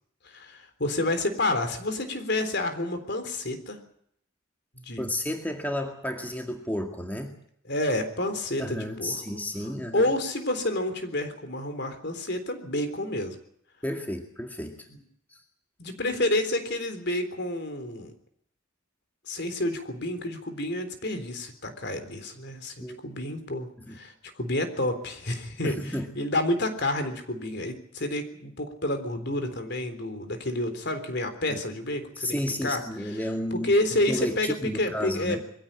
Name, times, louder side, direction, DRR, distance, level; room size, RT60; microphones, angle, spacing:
voice 1, 0.2-3.8 4.8-5.1 7.7-9.2 9.9-13.4 15.8-18.1 19.3-32.4 32.6-33.2 33.5-35.4, left 1 dB, 50° left, 8 dB, 3.7 m, -29 dB
voice 2, 5.0-7.4 8.6-10.1 13.8-14.9 15.3-15.4 22.8-23.0 23.9-24.0 25.6-26.1 31.5-31.6 32.2-33.7 34.1-35.4, left 1 dB, 10° left, 3 dB, 2.0 m, -32 dB
22.5 x 16.0 x 8.9 m, 0.69 s
head